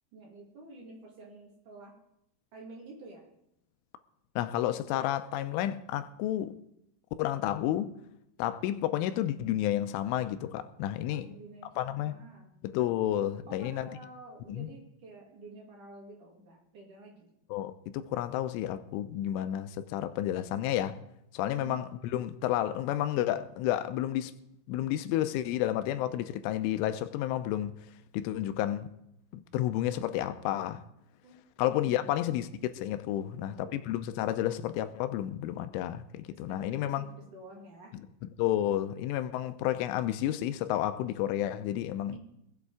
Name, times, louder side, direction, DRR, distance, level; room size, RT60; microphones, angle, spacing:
voice 1, 0.1-1.9 2.5-3.3 11.1-12.5 13.5-17.3 21.4-21.8 31.2-31.4 33.2-33.8 36.5-37.9 42.1-42.2, right 2 dB, 45° right, 3.4 m, -50 dB
voice 2, 4.4-6.6 7.2-7.9 8.4-11.3 11.8-12.2 12.6-13.9 14.5-14.7 17.5-21.0 21.3-24.3 24.7-27.7 28.1-28.9 29.3-30.8 31.6-32.5 32.8-37.0 37.9-42.2, left 12 dB, 85° left, 3.1 m, -31 dB
22.5 x 8.2 x 4.8 m
omnidirectional pair, 5.7 m